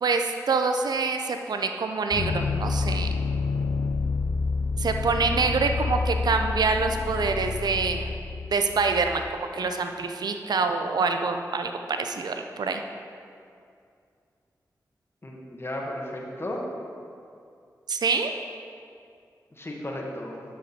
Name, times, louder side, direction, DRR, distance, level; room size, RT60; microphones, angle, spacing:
voice 1, 0.0-3.1 4.8-8.1 8.5-11.7 12.0-12.8 17.9-18.3, right 4 dB, 70° right, 6 dB, 0.6 m, -26 dB
sound 1, 2.1-9.3, left 4 dB, 70° left, 0.4 m, -28 dB
voice 2, 15.2-16.6 19.6-20.4, left 1 dB, 35° left, -1 dB, 1.7 m, -34 dB
9.7 x 6.4 x 4.4 m, 2.4 s
cardioid pair, 45°, 7 cm